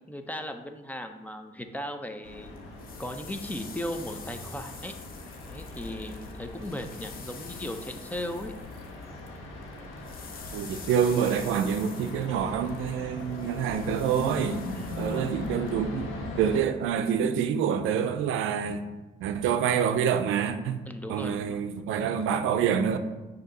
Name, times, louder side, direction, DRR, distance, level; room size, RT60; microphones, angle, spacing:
voice 1, 0.1-2.5 3.0-5.0 5.5-8.5 14.7-15.3 20.9-21.6, left 1 dB, 10° left, 0.5 m, -37 dB
sound 1, 2.2-16.6, left 2 dB, 85° left, 1.2 m, -40 dB
sound 2, 2.6-9.4 9.6-15.7, left 5 dB, 45° left, 0.8 m, -47 dB
voice 2, 10.5-14.7 15.0-16.1 16.4-18.8 19.2-20.8 21.1-23.0, right 7 dB, 90° right, 0.5 m, -27 dB
6.4 x 2.8 x 5.3 m
cardioid pair, 90°, 20 cm